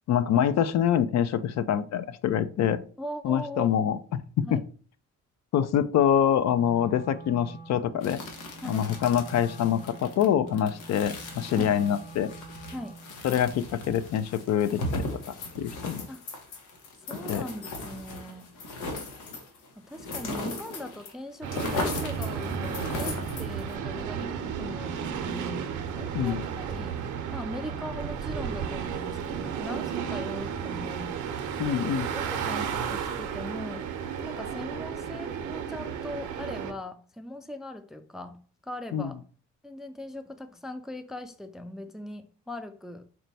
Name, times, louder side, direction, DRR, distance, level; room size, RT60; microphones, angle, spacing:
voice 1, 0.1-2.8 3.2-4.0 4.4-4.6 5.5-8.2 8.6-12.3 13.2-15.1 15.6-16.1 17.3-17.4 26.1-26.4 31.6-32.1 38.9-39.1, left 9 dB, 60° left, 0.4 m, -25 dB
voice 2, 3.0-3.9 4.4-4.6 8.6-8.9 11.5-11.8 12.7-13.0 16.1-16.2 17.0-18.5 19.8-27.0 27.3-31.2 31.7-33.9 34.2-39.2 39.6-43.1, left 1 dB, ahead, 0.3 m, -40 dB
Wind instrument woodwind instrument, 6.4-13.2, right 3 dB, 30° left, 1.3 m, -46 dB
sound 1, 8.0-21.1 21.4-23.8, left 2 dB, 85° left, 1.0 m, -37 dB
sound 2, 21.4-36.7, right 7 dB, 80° right, 0.7 m, -33 dB
4.4 x 2.2 x 4.0 m
cardioid pair, 90°, 30 cm